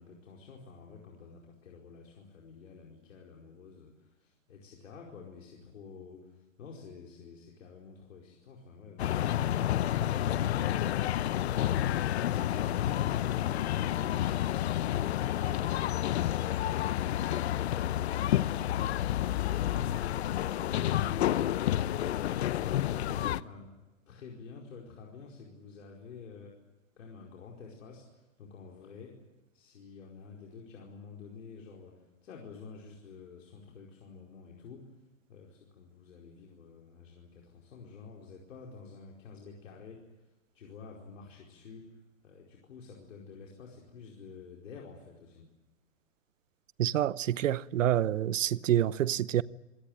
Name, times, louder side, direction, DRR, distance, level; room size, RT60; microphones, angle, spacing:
voice 1, 0.0-9.7 19.3-21.5 22.9-23.7 24.1-26.5 27.0-29.1 29.5-34.9 35.3-45.5, left 5 dB, 75° left, 4.9 m, -50 dB
sound 1, 9.0-23.4, left 12 dB, 55° left, 0.8 m, -29 dB
voice 2, 46.8-49.4, right 12 dB, 75° right, 0.9 m, -27 dB
26.5 x 17.5 x 8.9 m
hypercardioid pair, 160°, 39 cm